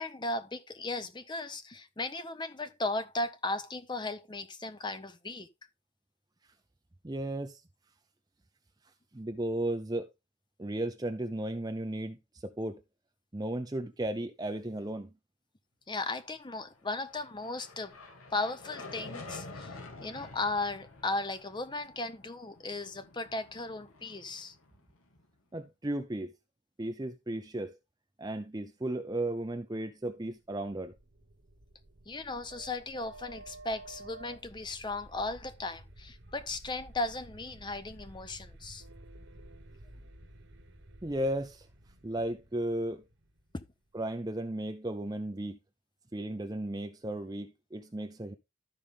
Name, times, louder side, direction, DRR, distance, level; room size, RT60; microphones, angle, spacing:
voice 1, 0.0-5.5 15.9-17.9 18.3-19.7 20.0-24.5 32.1-38.8 43.5-43.6, left 2 dB, 20° left, 0.6 m, -36 dB
voice 2, 7.0-7.6 9.1-10.1 10.6-12.8 13.3-15.1 25.5-26.3 26.8-27.8 28.2-30.9 41.0-41.7 42.0-43.0 43.9-45.6 46.1-48.3, right 1 dB, 20° right, 0.6 m, -35 dB
sound 1, 16.8-25.3, left 3 dB, 85° left, 2.1 m, -49 dB
sound 2, 30.4-44.1, right 1 dB, 60° right, 1.3 m, -52 dB
13.0 x 5.2 x 3.5 m
head